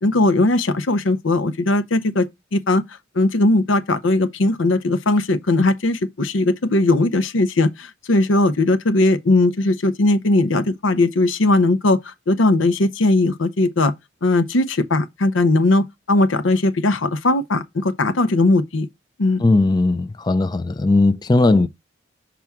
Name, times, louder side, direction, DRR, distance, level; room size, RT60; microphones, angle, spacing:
voice 1, 0.0-2.3 2.5-2.8 3.1-13.9 14.2-18.9 19.2-19.4, left 2 dB, 80° left, 0.8 m, -18 dB
voice 2, 19.4-21.7, left 2 dB, 20° left, 0.4 m, -17 dB
5.9 x 5.8 x 3.5 m
head